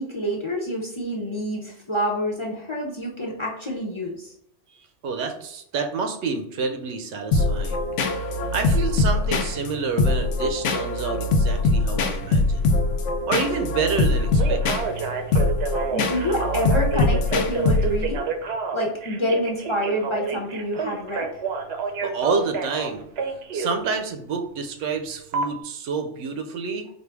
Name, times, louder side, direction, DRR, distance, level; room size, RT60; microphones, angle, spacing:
voice 1, 0.0-4.3 15.9-18.2 18.7-21.4, equal, 30° left, -3 dB, 0.7 m, -27 dB
voice 2, 5.0-7.8 8.1-12.7 13.3-14.8 22.0-23.1 23.5-26.9, right 4 dB, 90° right, 6 dB, 1.0 m, -28 dB
sound 1, 7.3-18.2, left 3 dB, 85° left, 0.9 m, -23 dB
Telephone, 14.2-23.8 25.3-25.5, right 5 dB, 65° right, 0.8 m, -29 dB
4.3 x 2.5 x 3.4 m, 0.75 s
omnidirectional pair, 1.2 m